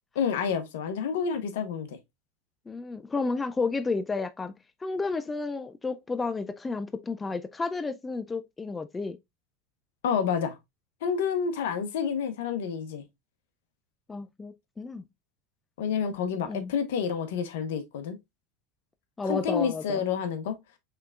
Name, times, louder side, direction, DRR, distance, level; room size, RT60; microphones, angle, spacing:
voice 1, 0.1-2.0 10.0-10.6 11.0-13.0 15.8-18.2 19.3-20.6, left 7 dB, 75° left, 1.0 m, -29 dB
voice 2, 2.7-4.5 4.8-9.2 14.1-15.1 16.4-16.7 19.2-20.0, left 4 dB, 15° left, 0.4 m, -31 dB
5.7 x 3.4 x 2.4 m
hypercardioid pair, 100°, 0 cm